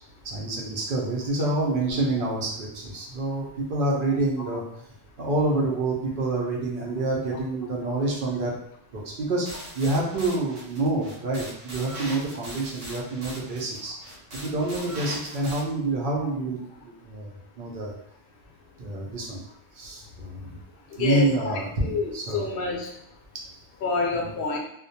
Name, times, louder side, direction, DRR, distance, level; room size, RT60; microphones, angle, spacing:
voice 1, 0.2-4.9 5.2-8.5 8.9-9.5 9.7-14.0 14.4-17.3 17.6-17.9 18.8-19.4 19.7-20.6 21.0-22.4, right 2 dB, 60° right, -2 dB, 0.6 m, -27 dB
sound 1, 9.5-15.6, right 1 dB, 80° right, 1.0 m, -40 dB
voice 2, 20.9-21.5 21.8-22.9 23.8-24.6, left 3 dB, 60° left, -1 dB, 0.6 m, -28 dB
2.2 x 2.1 x 2.7 m, 0.71 s
omnidirectional pair, 1.3 m